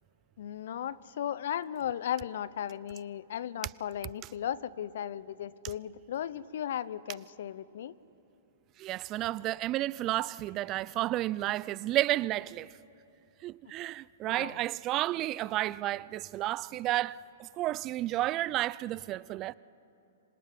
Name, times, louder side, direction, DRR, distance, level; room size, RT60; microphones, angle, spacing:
voice 1, 0.4-7.9 14.2-14.6, left 10 dB, 65° left, 0.8 m, -36 dB
voice 2, 8.8-12.8 13.4-19.5, right 15 dB, 35° right, 0.5 m, -32 dB
26.0 x 23.5 x 9.6 m
hypercardioid pair, 115°, 0 cm